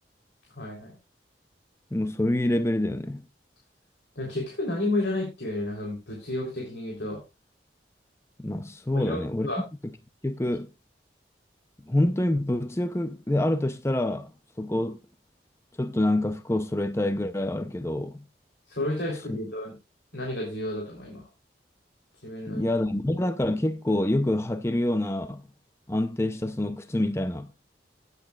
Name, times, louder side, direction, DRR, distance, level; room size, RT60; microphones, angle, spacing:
voice 1, 0.6-1.0 4.2-7.2 8.9-9.6 18.7-19.7 20.1-21.2 22.2-22.6, left 1 dB, 75° left, 3.6 m, -31 dB
voice 2, 1.9-3.2 8.4-9.7 10.2-10.7 11.9-14.3 14.6-15.0 15.8-18.2 19.3-19.4 22.5-25.4 25.9-27.5, left 1 dB, 15° left, 0.6 m, -26 dB
16.5 x 8.4 x 2.4 m
head